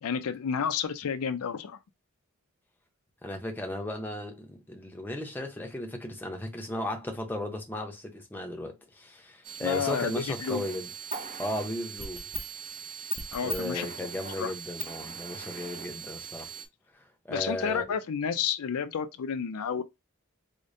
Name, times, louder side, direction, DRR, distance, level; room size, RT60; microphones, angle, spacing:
voice 1, 0.0-1.8 9.6-10.6 13.3-13.9 14.4-14.5 17.3-19.8, left 7 dB, 80° left, 0.4 m, -31 dB
voice 2, 3.2-10.9 11.4-12.3 13.4-16.5 17.2-17.8, left 1 dB, 10° left, 0.6 m, -35 dB
sound 1, 9.4-16.7, right 6 dB, 35° right, 0.5 m, -39 dB
4.9 x 2.1 x 2.6 m
head